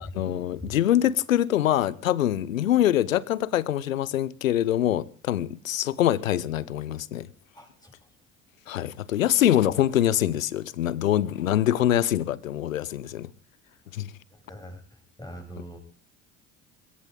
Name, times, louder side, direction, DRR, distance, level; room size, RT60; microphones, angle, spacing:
voice 1, 0.0-7.3 8.7-13.3 13.9-14.1, left 12 dB, 90° left, 0.8 m, -24 dB
voice 2, 7.5-7.9 14.3-15.8, equal, 10° left, 7.8 m, -43 dB
21.5 x 17.0 x 3.7 m
hypercardioid pair, 60°, 39 cm